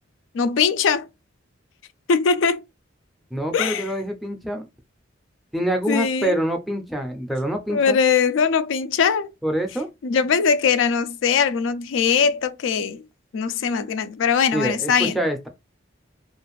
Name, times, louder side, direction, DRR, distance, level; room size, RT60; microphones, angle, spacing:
voice 1, 0.3-1.1 2.1-2.6 3.5-3.8 5.9-6.4 7.7-9.3 10.0-13.0 13.3-15.2, left 6 dB, 85° left, 0.4 m, -21 dB
voice 2, 3.3-4.7 5.5-8.0 9.4-9.9 14.5-15.5, right 1 dB, ahead, 0.4 m, -26 dB
2.4 x 2.4 x 3.0 m
head